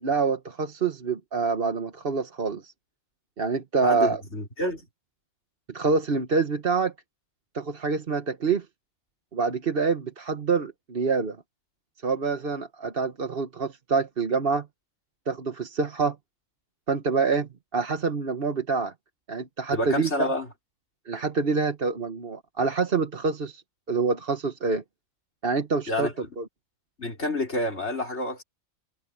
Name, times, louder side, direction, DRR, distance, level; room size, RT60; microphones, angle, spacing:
voice 1, 0.0-2.7 3.4-4.2 5.7-6.9 7.5-8.6 9.3-11.4 12.0-14.7 15.3-16.2 16.9-18.9 19.3-20.3 21.0-23.6 23.9-24.8 25.4-26.1 26.4-26.5, right 4 dB, 45° right, 1.4 m, -26 dB
voice 2, 3.8-4.9 19.7-20.5 25.9-26.3 27.0-28.4, left 1 dB, 55° left, 5.7 m, -28 dB
omnidirectional pair, 1.4 m